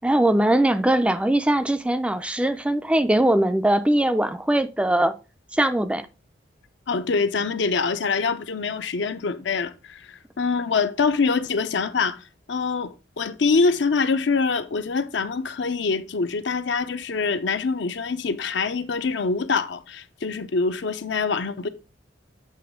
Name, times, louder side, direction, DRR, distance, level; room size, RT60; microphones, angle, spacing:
voice 1, 0.0-5.1 5.5-6.1, right 1 dB, 5° right, 0.3 m, -21 dB
voice 2, 6.9-21.7, left 4 dB, 70° left, 0.6 m, -25 dB
7.8 x 3.1 x 5.0 m
head